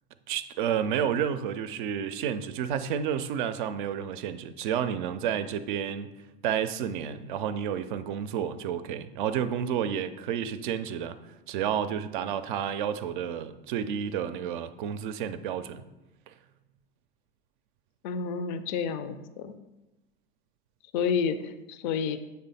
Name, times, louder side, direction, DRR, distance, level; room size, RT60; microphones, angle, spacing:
voice 1, 0.3-6.1 6.4-11.2 11.5-15.8, right 8 dB, 55° right, 0.5 m, -30 dB
voice 2, 18.0-19.5 20.9-22.2, left 6 dB, 50° left, 0.5 m, -30 dB
7.6 x 3.3 x 4.1 m
figure-of-eight pair, 80°, 30 cm